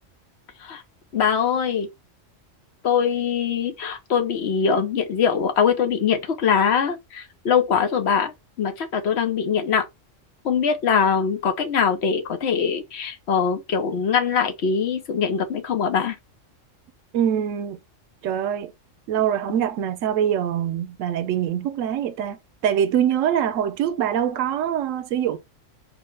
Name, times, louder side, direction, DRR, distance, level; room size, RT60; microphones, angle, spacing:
voice 1, 1.1-1.9 2.8-8.3 8.6-9.9 10.4-16.2, left 7 dB, 60° left, 0.9 m, -22 dB
voice 2, 17.1-17.8 18.2-18.7 19.1-25.4, right 9 dB, 90° right, 1.0 m, -24 dB
4.3 x 2.1 x 3.2 m
omnidirectional pair, 1.3 m